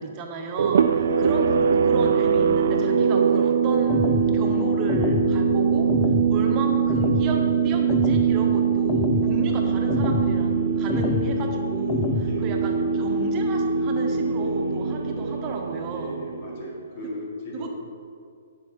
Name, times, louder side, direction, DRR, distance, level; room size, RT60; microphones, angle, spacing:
voice 1, 0.0-5.9 6.3-16.2 17.0-17.1 17.5-17.8, right 3 dB, 30° right, 1 dB, 1.2 m, -33 dB
sound 1, 0.6-16.9, right 6 dB, 65° right, 0.3 m, -22 dB
sound 2, 3.9-4.3 4.9-5.3 5.9-6.3 6.9-7.3 7.9-8.3 8.9-9.3 9.9-10.3 10.9-11.3 11.9-12.3, left 5 dB, 25° left, 0.5 m, -26 dB
voice 2, 15.9-17.7, left 1 dB, 50° left, -3 dB, 2.2 m, -36 dB
8.2 x 6.5 x 4.2 m, 2.2 s
hypercardioid pair, 135°, 0 cm